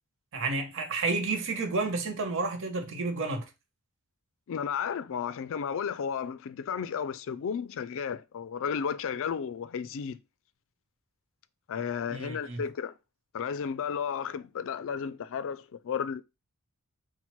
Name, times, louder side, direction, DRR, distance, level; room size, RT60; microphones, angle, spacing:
voice 1, 0.3-3.4 12.1-12.6, right 3 dB, 60° right, 0.9 m, -31 dB
voice 2, 4.5-10.2 11.7-12.9 13.3-16.2, left 7 dB, 60° left, 0.4 m, -33 dB
4.3 x 2.1 x 4.4 m
head